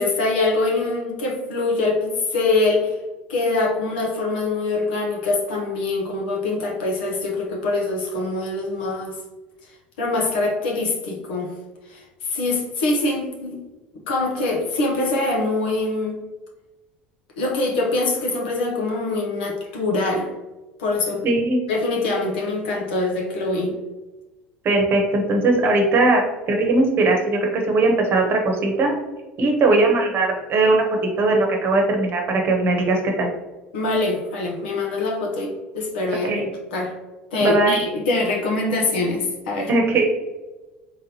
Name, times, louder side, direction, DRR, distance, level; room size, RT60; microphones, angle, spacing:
voice 1, 0.0-2.9 3.3-9.2 10.0-11.5 11.9-13.6 13.9-16.1 17.4-20.3 20.8-21.3 21.7-23.7 33.7-36.9 37.3-39.7, left 2 dB, 70° left, 0 dB, 0.9 m, -24 dB
voice 2, 21.2-21.6 24.6-28.9 29.4-30.8 31.2-33.3 36.2-36.5 37.4-37.8 39.7-40.0, right 2 dB, 40° right, 2 dB, 1.0 m, -19 dB
3.8 x 3.5 x 2.8 m, 1.1 s
figure-of-eight pair, 65°, 5 cm